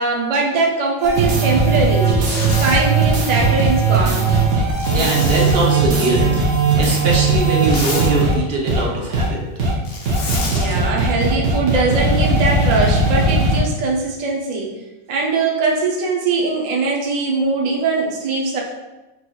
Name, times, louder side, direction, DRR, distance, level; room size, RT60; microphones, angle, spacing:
voice 1, 0.0-2.1 2.6-4.3 10.5-14.7 15.1-18.6, right 3 dB, 70° right, -1 dB, 0.4 m, -21 dB
sound 1, 1.0-8.3 8.7-8.8 9.1-9.3 9.6-9.7 10.0-13.6, right 3 dB, 85° right, 1.2 m, -18 dB
Zipper (clothing), 2.1-2.8 4.8-6.1 7.4-8.1 9.8-10.7, left 3 dB, 60° left, 0.7 m, -29 dB
voice 2, 4.9-6.2 6.8-9.4, right 2 dB, 55° right, -1 dB, 0.8 m, -21 dB
4.5 x 2.9 x 2.2 m, 1.1 s
omnidirectional pair, 1.4 m